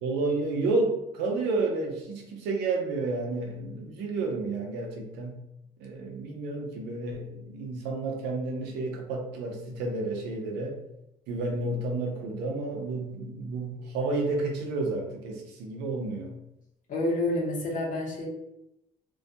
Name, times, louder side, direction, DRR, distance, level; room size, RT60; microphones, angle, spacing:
voice 1, 0.0-5.3 5.8-10.8 11.3-16.3, right 3 dB, 90° right, 1 dB, 0.6 m, -31 dB
voice 2, 16.9-18.3, left 1 dB, 50° left, -2 dB, 0.8 m, -28 dB
2.3 x 2.2 x 2.7 m, 0.85 s
cardioid pair, 110°, 17 cm